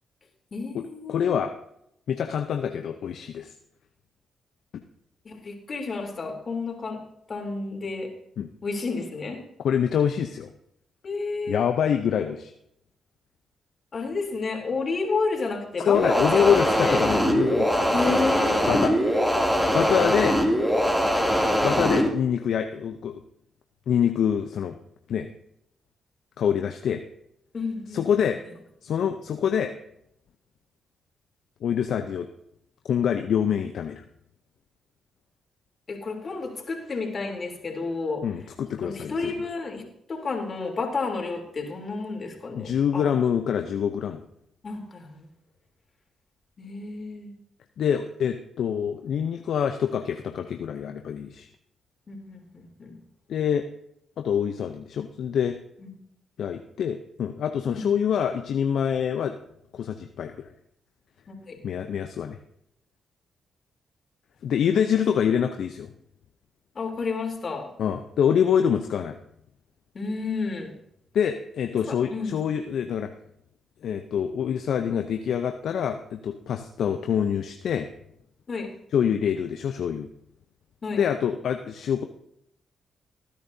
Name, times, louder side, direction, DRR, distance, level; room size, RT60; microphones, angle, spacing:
voice 1, 0.5-1.4 5.2-7.0 7.3-8.1 8.6-9.4 11.0-11.7 13.9-17.0 17.9-19.3 27.5-28.2 35.9-38.2 38.8-39.8 40.1-43.0 44.6-45.3 46.6-47.3 52.1-53.0 55.8-55.9 57.7-57.9 61.3-61.6 66.7-67.7 69.9-70.7 71.9-72.3 78.5-78.7 80.8-81.0, left 4 dB, 50° left, 2 dB, 3.3 m, -31 dB
voice 2, 1.1-1.5 2.1-3.5 8.4-8.5 9.6-10.5 11.5-12.5 15.8-18.1 18.7-18.9 19.7-20.4 21.6-23.1 23.9-24.8 25.1-25.3 26.4-27.0 27.9-28.4 28.8-29.7 31.6-32.3 32.9-34.0 38.2-39.3 42.5-44.2 47.8-51.5 53.3-53.7 54.2-55.6 56.4-59.4 59.7-60.5 61.6-62.4 64.4-65.9 67.8-69.2 71.1-73.1 73.8-77.9 78.9-80.1 80.9-82.0, left 8 dB, 70° left, 6 dB, 0.7 m, -25 dB
sound 1, 15.9-22.1, equal, 5° right, 2.7 m, -22 dB
19.5 x 10.0 x 2.8 m, 0.75 s
supercardioid pair, 50°, 0 cm